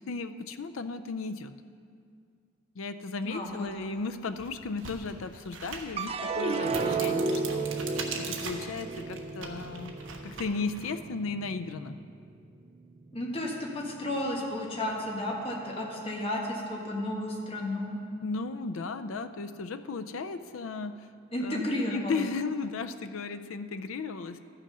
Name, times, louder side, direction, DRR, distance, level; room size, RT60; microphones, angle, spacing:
voice 1, 0.1-1.5 2.8-10.0 10.2-12.0 18.2-21.1 21.4-24.4, left 4 dB, 85° left, 10 dB, 0.5 m, -35 dB
voice 2, 3.2-3.7 13.1-18.0 21.3-22.2, left 1 dB, 30° left, -1 dB, 1.5 m, -32 dB
sound 1, 3.6-3.7 4.3-10.9, right 5 dB, 75° right, 1.2 m, -41 dB
sound 2, 6.0-12.4 12.8-13.5, right 3 dB, 30° right, 0.4 m, -33 dB
13.5 x 6.4 x 5.5 m, 2.2 s
head